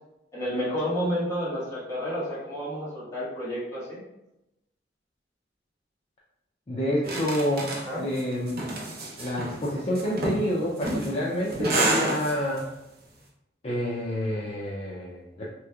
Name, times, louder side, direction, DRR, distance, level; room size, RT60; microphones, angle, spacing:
voice 1, 0.3-4.0 7.0-7.2 7.9-8.0, equal, 20° left, -9 dB, 1.3 m, -30 dB
voice 2, 6.7-7.7 8.0-8.6 9.2-12.6 13.6-15.5, equal, 35° left, -5 dB, 0.5 m, -28 dB
sound 1, 7.0-12.6, right 2 dB, 60° right, 0.7 m, -29 dB
3.3 x 3.0 x 2.3 m, 0.92 s
head